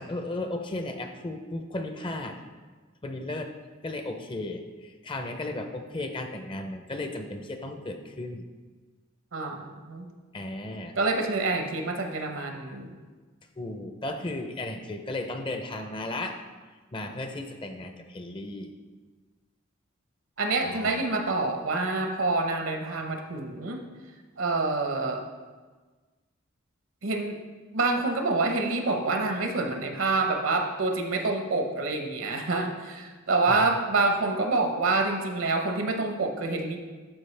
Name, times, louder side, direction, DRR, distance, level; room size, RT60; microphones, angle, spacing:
voice 1, 0.0-2.4 3.0-3.5 3.8-8.4 10.3-10.9 13.6-16.4 16.9-18.7 20.6-21.0 33.5-33.8, left 2 dB, 25° left, 6 dB, 0.5 m, -35 dB
voice 2, 9.3-10.1 10.9-13.0 20.4-23.8 24.4-25.2 27.0-27.4 27.7-36.8, right 3 dB, 70° right, 4 dB, 0.9 m, -27 dB
12.0 x 4.6 x 3.3 m, 1.4 s
head